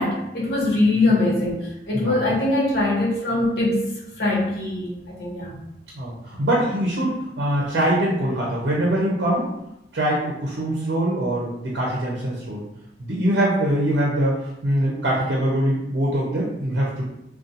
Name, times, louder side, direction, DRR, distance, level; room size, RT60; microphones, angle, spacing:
voice 1, 0.0-5.6, left 2 dB, 65° left, -4 dB, 0.8 m, -22 dB
voice 2, 6.0-9.5 9.9-12.6 13.0-14.4 14.6-17.0, right 1 dB, 80° right, -4 dB, 0.6 m, -23 dB
2.5 x 2.2 x 2.6 m, 0.85 s
head